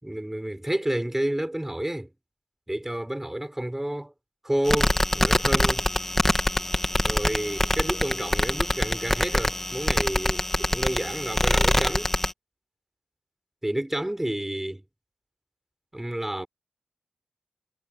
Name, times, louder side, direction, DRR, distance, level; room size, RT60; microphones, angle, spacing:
voice 1, 0.0-2.1 2.7-4.1 4.4-5.9 7.0-12.1 13.6-14.8 15.9-16.5, right 1 dB, 10° right, 5.3 m, -30 dB
sound 1, 4.6-12.3, left 1 dB, 15° left, 2.4 m, -24 dB
cardioid pair, 50°, 3 cm